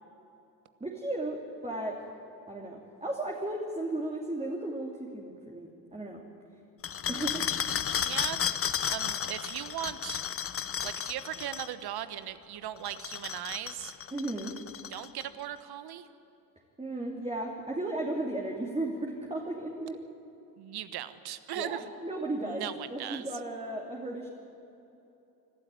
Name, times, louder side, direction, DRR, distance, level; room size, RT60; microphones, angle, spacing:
voice 1, 0.8-2.0 2.5-6.2 7.1-7.4 14.1-14.5 16.8-20.0 21.6-24.3, right 2 dB, 15° right, -1 dB, 2.8 m, -35 dB
sound 1, 6.8-11.7 12.8-15.2, left 8 dB, 30° left, 0.8 m, -33 dB
voice 2, 8.0-8.5 8.8-10.2 10.6-13.9 14.9-16.1 20.6-21.9 22.4-23.3, right 11 dB, 50° right, 13 dB, 1.3 m, -38 dB
24.5 x 12.5 x 9.2 m, 2.9 s
hypercardioid pair, 65°, 48 cm